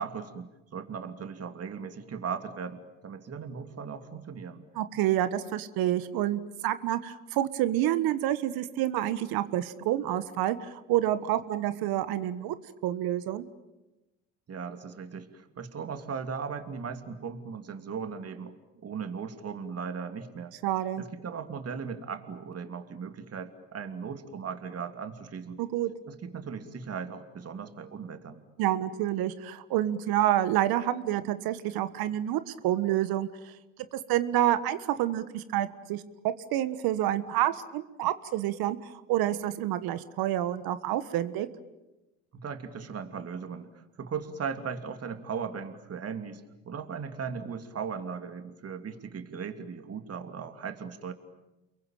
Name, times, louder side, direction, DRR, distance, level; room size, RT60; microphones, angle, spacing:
voice 1, 0.0-4.6 14.5-18.6 18.8-20.6 21.0-25.6 26.0-28.4 42.3-51.1, right 6 dB, 40° right, 8 dB, 2.9 m, -38 dB
voice 2, 4.7-12.5 12.8-13.4 20.6-21.0 25.6-25.9 28.6-33.5 33.9-41.5, right 13 dB, 65° right, 13 dB, 1.5 m, -28 dB
29.0 x 23.0 x 9.0 m, 1.0 s
hypercardioid pair, 70°, 39 cm